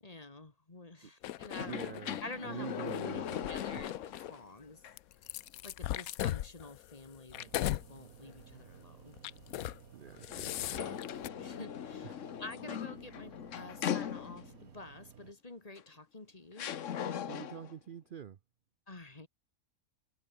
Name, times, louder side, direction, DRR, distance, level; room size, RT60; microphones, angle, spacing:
voice 1, 0.0-2.7 3.5-4.8 5.6-9.2 11.4-16.7 18.9-19.3, left 2 dB, 25° left, 1.8 m, -49 dB
sound 1, 1.2-2.2 2.8-4.3 5.0-7.9 8.3-8.5 9.2-9.8 10.1-11.3, left 13 dB, 85° left, 1.1 m, -38 dB
sound 2, 1.5-4.4 4.8-4.9 10.3-14.6 15.8-15.9 16.6-17.7, left 9 dB, 60° left, 1.2 m, -40 dB
voice 2, 1.6-3.8 9.9-11.0 12.0-12.2 16.9-18.4, right 8 dB, 50° right, 0.7 m, -46 dB
sound 3, 7.3-15.3, right 9 dB, 80° right, 1.6 m, -56 dB
omnidirectional pair, 1.5 m